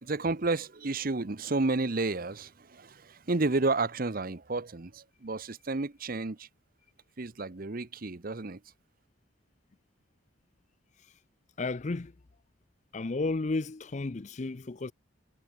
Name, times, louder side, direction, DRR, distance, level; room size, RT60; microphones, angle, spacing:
voice 1, 0.0-6.5 7.2-8.6, right 3 dB, 45° right, 0.9 m, -31 dB
voice 2, 11.6-12.1 12.9-14.9, left 3 dB, 35° left, 0.5 m, -32 dB
head